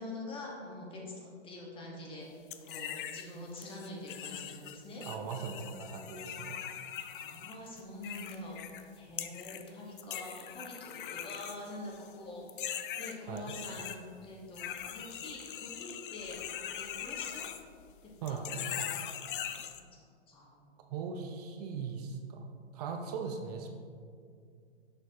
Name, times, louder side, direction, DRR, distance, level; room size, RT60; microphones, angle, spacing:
voice 1, 0.0-2.3 2.7-5.0 7.1-8.6 8.9-12.4 13.0-14.0 14.2-16.4 16.8-17.5 18.0-18.8 19.4-19.5 20.3-20.7, left 2 dB, 15° left, -2 dB, 1.2 m, -45 dB
sound 1, 2.5-3.3 3.6-8.8 9.2-9.7 10.0-12.1 12.5-14.0 14.5-18.0 18.3-19.8, left 10 dB, 50° left, 0.4 m, -41 dB
voice 2, 5.1-6.6 13.3-13.5 18.2-18.6 20.8-22.5 22.7-23.7, right 5 dB, 35° right, 4 dB, 0.5 m, -39 dB
6.6 x 5.8 x 2.8 m, 2.2 s
hypercardioid pair, 120°, 33 cm